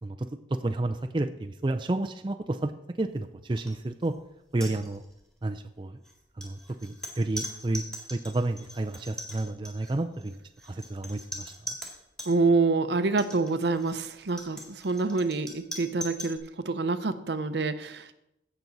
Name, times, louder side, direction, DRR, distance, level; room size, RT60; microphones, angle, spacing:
voice 1, 0.5-2.7 3.0-4.1 4.5-5.0 5.4-6.0 6.4-7.8 8.1-10.4 10.6-11.5, right 2 dB, 25° right, 6 dB, 0.4 m, -30 dB
sound 1, 3.6-3.7 4.0-4.2 4.5-5.3 6.0-12.3 13.1-16.4, equal, 5° left, 2.0 m, -41 dB
voice 2, 12.3-18.1, right 3 dB, 65° right, 11 dB, 0.7 m, -27 dB
16.5 x 6.1 x 4.0 m, 0.81 s
head